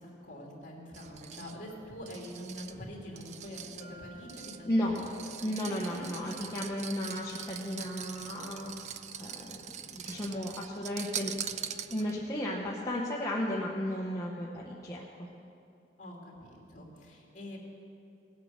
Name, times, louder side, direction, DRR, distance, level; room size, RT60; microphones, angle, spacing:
voice 1, 0.0-4.7 4.9-6.1 16.0-17.6, equal, 40° left, -2 dB, 2.8 m, -45 dB
sound 1, 0.9-12.3, right 9 dB, 40° right, 0.4 m, -43 dB
Bell, 3.8-5.4, right 1 dB, 60° left, 2.4 m, -54 dB
voice 2, 4.6-5.0 5.4-9.6 9.9-11.3 11.9-15.3, left 1 dB, 20° left, -5 dB, 1.0 m, -34 dB
18.5 x 8.5 x 6.5 m, 2.6 s
head